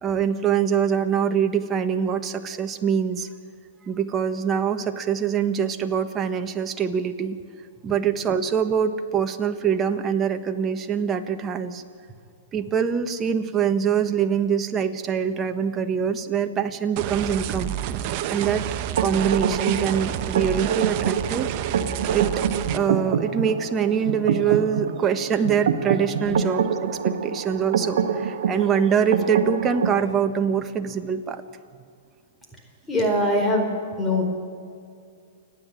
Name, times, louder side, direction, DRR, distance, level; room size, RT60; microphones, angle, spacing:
voice 1, 0.0-3.3 3.9-7.4 7.8-11.8 12.5-18.7 19.0-21.5 22.1-22.4 22.7-26.7 27.0-31.4, right 7 dB, 25° right, 7 dB, 1.4 m, -24 dB
sound 1, 17.0-22.8, right 11 dB, 45° right, 1.0 m, -29 dB
sound 2, 19.0-30.0, right 7 dB, 70° right, 1.4 m, -26 dB
voice 2, 32.9-33.7 34.0-34.3, left 1 dB, 10° left, 1 dB, 4.5 m, -22 dB
29.0 x 10.5 x 9.0 m, 2.3 s
hypercardioid pair, 120°, 0 cm